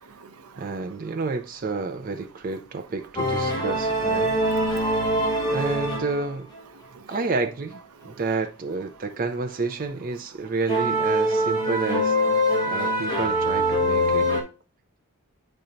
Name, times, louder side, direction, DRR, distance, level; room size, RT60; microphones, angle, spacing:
voice 1, 0.0-0.8 4.5-5.5 6.8-7.1 8.0-8.2, right 5 dB, 85° right, 0.7 m, -49 dB
voice 2, 0.6-4.4 4.7-5.0 5.5-6.5 7.1-7.8 8.0-12.2 12.7-14.3, right 3 dB, 40° right, 0.4 m, -30 dB
sound 1, 3.2-6.6 7.1-7.2 8.3-8.4 10.7-14.4, equal, 20° left, 1.2 m, -23 dB
9.1 x 4.3 x 2.6 m
head